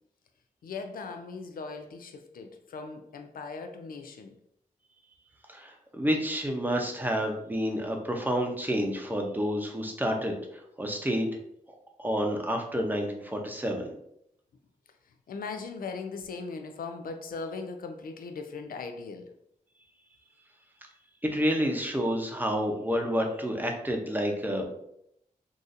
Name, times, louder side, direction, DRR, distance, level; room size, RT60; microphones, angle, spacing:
voice 1, 0.6-4.4 15.3-19.3, left 4 dB, 85° left, 6 dB, 0.4 m, -39 dB
voice 2, 5.5-11.3 12.0-13.9 21.2-24.7, equal, 10° right, 2 dB, 0.7 m, -29 dB
4.0 x 2.5 x 2.5 m, 0.75 s
cardioid pair, 65°, 15 cm